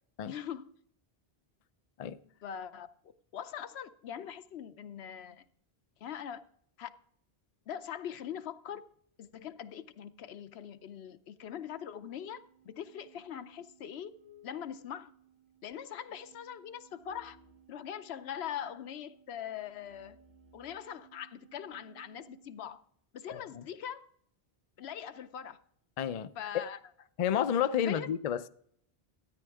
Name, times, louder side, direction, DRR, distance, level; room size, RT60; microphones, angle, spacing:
voice 1, 0.3-0.7 2.4-2.9 3.3-5.4 6.0-6.4 6.8-6.9 7.7-8.8 9.2-14.1 14.4-15.1 15.6-17.4 17.7-20.2 20.5-22.8 23.1-24.1 24.8-25.6 26.4-26.8 27.9-28.1, left 9 dB, 80° left, 0.9 m, -42 dB
sound 1, 11.4-22.6, right 5 dB, 80° right, 3.2 m, -61 dB
voice 2, 23.3-23.6 26.0-26.7 27.2-28.5, left 9 dB, 50° left, 0.5 m, -31 dB
13.5 x 9.3 x 3.5 m
omnidirectional pair, 1.1 m